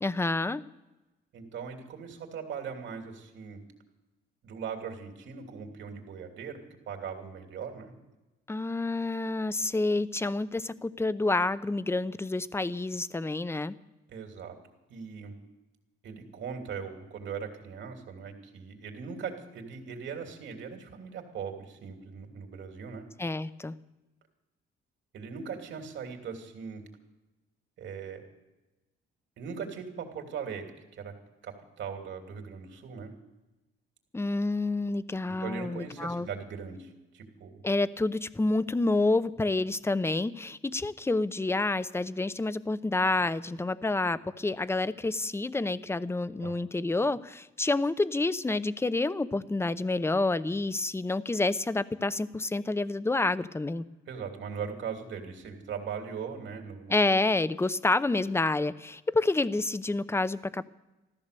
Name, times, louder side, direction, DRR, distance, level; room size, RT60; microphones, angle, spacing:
voice 1, 0.0-0.6 8.5-13.7 23.2-23.7 34.1-36.3 37.6-53.8 56.9-60.6, left 2 dB, 10° left, 15 dB, 0.7 m, -28 dB
voice 2, 1.3-3.6 4.4-6.6 6.9-7.9 14.1-14.6 14.9-15.3 16.0-23.0 25.1-26.8 27.8-28.2 29.4-31.1 31.4-33.1 35.3-37.6 46.4-46.5 54.1-56.9, right 6 dB, 70° right, 4 dB, 3.1 m, -39 dB
14.5 x 14.0 x 6.9 m, 1.0 s
cardioid pair, 90°, 20 cm